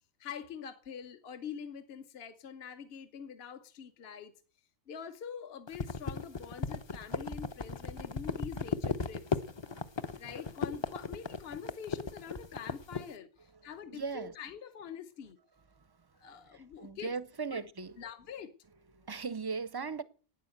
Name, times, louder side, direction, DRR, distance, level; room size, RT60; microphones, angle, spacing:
voice 1, 0.2-4.3 4.9-9.4 10.1-15.4 16.2-17.1 17.5-17.6 18.0-18.5, left 7 dB, 55° left, 1.1 m, -45 dB
sound 1, 5.7-13.1, left 4 dB, 30° left, 0.6 m, -36 dB
voice 2, 13.9-14.3 15.8-16.0 16.5-17.9 18.9-20.0, right 5 dB, 30° right, 0.5 m, -38 dB
11.5 x 9.6 x 7.9 m
omnidirectional pair, 1.3 m